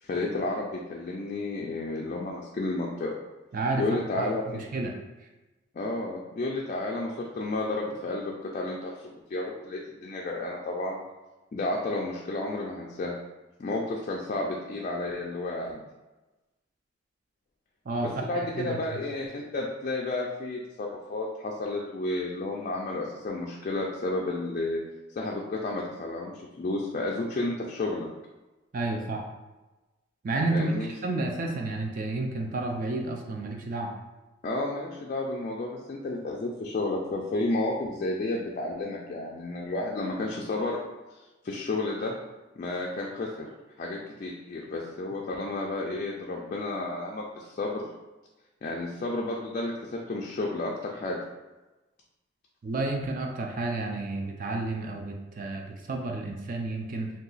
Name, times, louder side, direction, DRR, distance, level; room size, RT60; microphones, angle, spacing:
voice 1, 0.0-3.2 3.8-4.6 5.7-11.0 11.5-13.1 13.6-15.8 18.0-24.8 25.2-28.1 30.5-30.9 34.4-40.8 41.1-41.2 41.4-42.1 42.6-43.5 43.8-47.8 48.6-51.2, left 2 dB, 40° left, -2 dB, 0.3 m, -31 dB
voice 2, 3.5-4.9 17.9-18.8 28.7-29.2 30.2-33.9 52.6-57.1, right 2 dB, 45° right, 1 dB, 0.3 m, -31 dB
2.8 x 2.3 x 3.9 m, 1.1 s
head